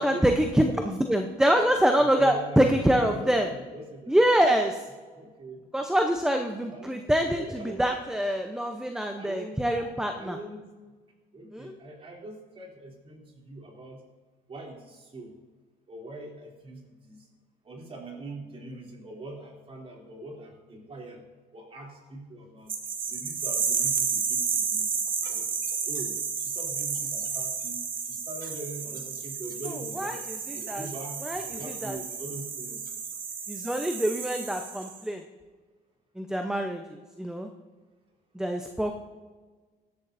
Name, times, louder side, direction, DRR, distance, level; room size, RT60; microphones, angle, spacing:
voice 1, 0.0-3.5 4.1-4.8 5.7-10.4 11.5-11.7 29.6-30.9 31.2-32.0 33.5-35.2 36.2-37.5 38.3-38.9, right 1 dB, 5° right, 4 dB, 0.8 m, -25 dB
voice 2, 2.0-4.2 5.1-5.6 6.7-8.2 9.2-10.7 11.3-14.0 14.5-15.3 15.9-17.3 17.6-21.2 21.5-22.7 23.1-24.9 25.3-25.5 25.9-27.8 28.0-30.2 30.5-31.2 31.4-32.8, right 2 dB, 35° right, -1 dB, 3.1 m, -42 dB
sound 1, 22.7-35.0, right 6 dB, 55° right, 1.9 m, -32 dB
16.5 x 11.5 x 2.7 m, 1.4 s
cardioid pair, 110°, 17 cm